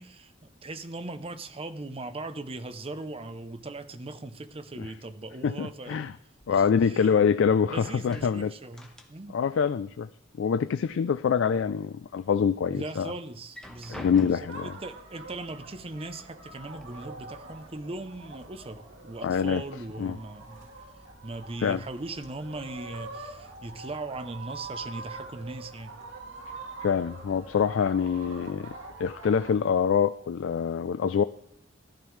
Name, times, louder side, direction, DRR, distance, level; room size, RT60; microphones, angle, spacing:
voice 1, 0.0-6.2 6.5-7.1 7.7-9.4 12.7-20.6 21.2-26.0, right 2 dB, 30° right, 0.7 m, -39 dB
voice 2, 5.4-6.1 6.5-8.5 9.3-10.1 10.4-13.1 14.0-14.7 19.2-19.6 20.0-20.2 21.6-21.8 26.8-28.7 29.0-31.2, left 6 dB, 75° left, 0.3 m, -25 dB
sound 1, 6.4-7.6 7.9-9.5 9.8-10.8 11.2-12.0 12.5-12.6 13.3-14.7 15.7-15.8 16.2-16.8, left 1 dB, 5° left, 1.2 m, -48 dB
sound 2, 14.5-29.6, right 3 dB, 85° right, 2.2 m, -45 dB
14.5 x 12.0 x 3.2 m
head